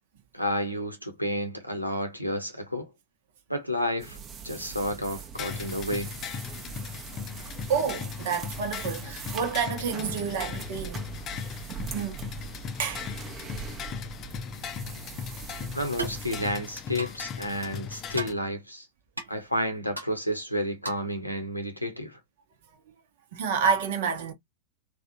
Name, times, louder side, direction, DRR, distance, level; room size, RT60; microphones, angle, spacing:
voice 1, 0.3-2.9 3.5-4.2 4.4-6.2 15.7-18.9 19.3-22.2, equal, 90° left, 0.9 m, -31 dB
sound 1, 4.0-16.6, right 7 dB, 25° right, 0.7 m, -42 dB
sound 2, 5.3-18.3, left 7 dB, 30° left, 0.5 m, -38 dB
voice 2, 7.4-11.1 11.9-12.3 12.8-13.1 13.6-13.7 23.3-24.3, right 6 dB, 55° right, 0.9 m, -29 dB
sound 3, 16.0-16.2 17.0-17.2 18.1-18.4 19.2-19.3 20.0-20.1 20.8-21.1, right 3 dB, 85° right, 0.7 m, -35 dB
3.3 x 2.3 x 2.7 m
figure-of-eight pair, 90°, 0 cm